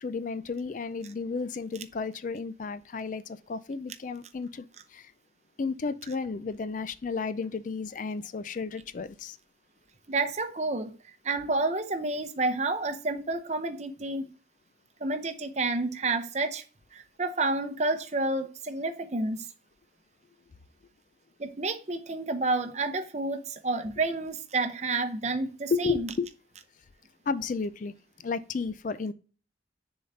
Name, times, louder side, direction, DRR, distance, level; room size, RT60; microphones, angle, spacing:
voice 1, 0.0-4.7 4.9-5.1 5.6-9.4 25.7-26.3 27.3-27.9 28.2-29.1, left 4 dB, 45° left, 0.4 m, -32 dB
voice 2, 10.1-10.9 11.2-14.3 15.0-16.6 16.9-19.5 21.4-26.1, right 3 dB, 35° right, 0.7 m, -30 dB
6.6 x 3.9 x 4.0 m
head